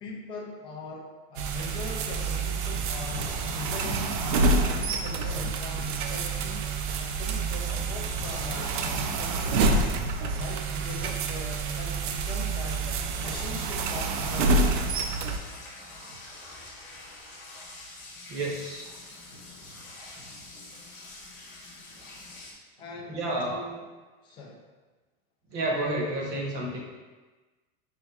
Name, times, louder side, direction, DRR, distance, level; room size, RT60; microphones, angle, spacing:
voice 1, 0.0-6.7 6.9-9.9 10.2-14.5 22.3-22.4 22.8-23.8 24.2-24.6, left 3 dB, 15° left, -1 dB, 0.3 m, -41 dB
sound 1, 1.4-15.4, right 3 dB, 55° right, 0.4 m, -28 dB
voice 2, 3.6-4.0 7.7-7.8 8.9-9.0 9.9-10.0 14.9-15.0 18.3-18.9 23.1-23.6 25.5-26.8, right 1 dB, 35° right, -1 dB, 0.8 m, -31 dB
sound 2, 14.1-22.5, left 2 dB, 35° left, 1.1 m, -46 dB
5.4 x 3.4 x 2.3 m, 1.3 s
supercardioid pair, 160°, 31 cm